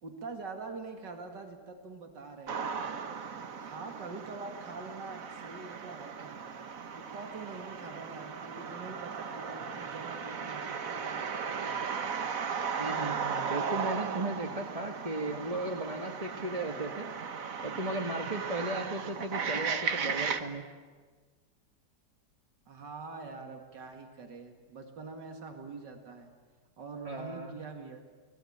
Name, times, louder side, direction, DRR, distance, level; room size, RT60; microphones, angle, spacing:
voice 1, 0.0-2.8 3.6-6.4 6.9-11.7 22.7-26.3 26.8-28.0, right 4 dB, 85° right, 4 dB, 2.8 m, -45 dB
sound 1, 2.5-20.4, right 6 dB, 55° right, 1.6 m, -36 dB
voice 2, 12.8-17.3 17.6-20.6 27.0-27.5, right 2 dB, 20° right, 2 dB, 1.7 m, -36 dB
29.5 x 21.0 x 8.8 m, 1.4 s
omnidirectional pair, 1.8 m